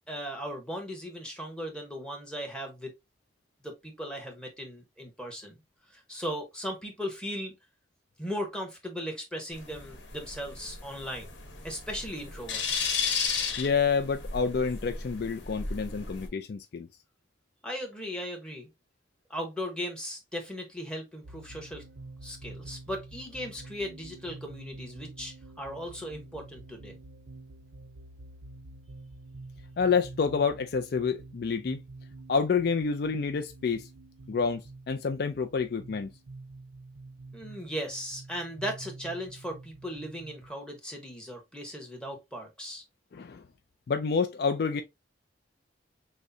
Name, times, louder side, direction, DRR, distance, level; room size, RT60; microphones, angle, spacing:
voice 1, 0.1-2.9 3.6-5.6 5.9-7.5 8.2-11.3 11.6-12.9 17.6-18.7 19.3-21.8 22.2-27.0 37.3-42.8, equal, 5° left, 1.0 m, -37 dB
sound 1, 9.5-16.3, left 5 dB, 75° left, 1.1 m, -34 dB
voice 2, 13.6-16.9 29.8-31.8 32.3-33.9 34.3-36.1 43.1-43.4 43.9-44.8, left 5 dB, 55° left, 0.3 m, -28 dB
sound 2, 21.2-40.5, right 2 dB, 85° right, 0.5 m, -48 dB
6.2 x 2.1 x 2.7 m
head